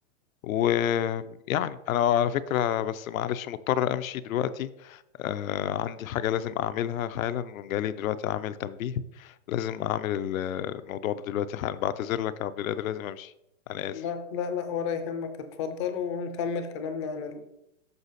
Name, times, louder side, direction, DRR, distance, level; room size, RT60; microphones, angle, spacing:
voice 1, 0.4-13.3 13.7-14.0, left 10 dB, 80° left, 13 dB, 0.6 m, -29 dB
voice 2, 13.9-17.4, left 6 dB, 25° left, 8 dB, 0.4 m, -32 dB
6.8 x 5.5 x 4.0 m, 0.84 s
hypercardioid pair, 145°, 40 cm